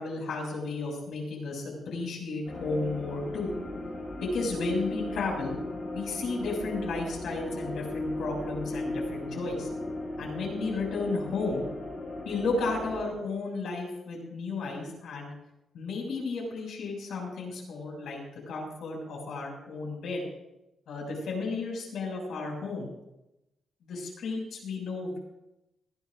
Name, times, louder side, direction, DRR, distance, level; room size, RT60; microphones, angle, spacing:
voice 1, 0.0-3.5 4.2-5.6 5.9-9.7 10.2-11.7 12.2-15.3 15.7-18.2 18.5-20.2 20.9-22.9 23.8-25.2, left 3 dB, 75° left, -1 dB, 6.6 m, -33 dB
sound 1, 2.5-13.0, left 1 dB, 30° left, 6.7 m, -36 dB
21.0 x 16.0 x 2.7 m, 0.90 s
wide cardioid pair, 170°, 0 cm